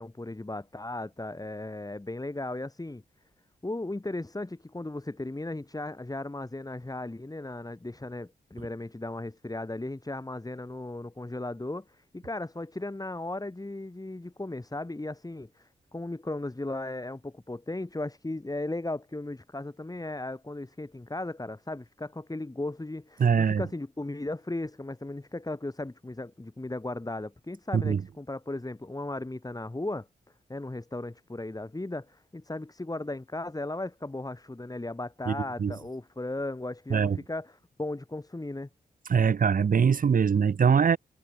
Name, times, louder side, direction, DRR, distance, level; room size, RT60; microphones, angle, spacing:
voice 1, 0.0-3.0 3.6-30.1 30.5-38.7, left 2 dB, 20° left, 4.6 m, -36 dB
voice 2, 23.2-23.6 27.7-28.0 35.3-35.7 36.9-37.2 39.1-41.0, right 6 dB, 50° right, 0.8 m, -23 dB
cardioid pair, 50°, 18 cm